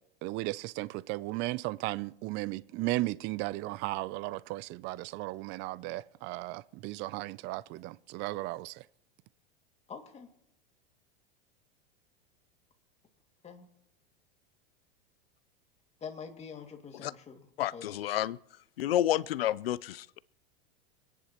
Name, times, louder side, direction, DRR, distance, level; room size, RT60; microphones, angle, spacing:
voice 1, 0.2-8.8, right 19 dB, 40° right, 0.4 m, -35 dB
voice 2, 9.9-10.3 13.4-13.7 16.0-17.4 17.7-17.9, left 6 dB, 25° left, 2.2 m, -45 dB
voice 3, 17.6-18.4 18.8-20.2, left 12 dB, 85° left, 0.5 m, -30 dB
26.0 x 10.0 x 3.0 m
hypercardioid pair, 105°, 29 cm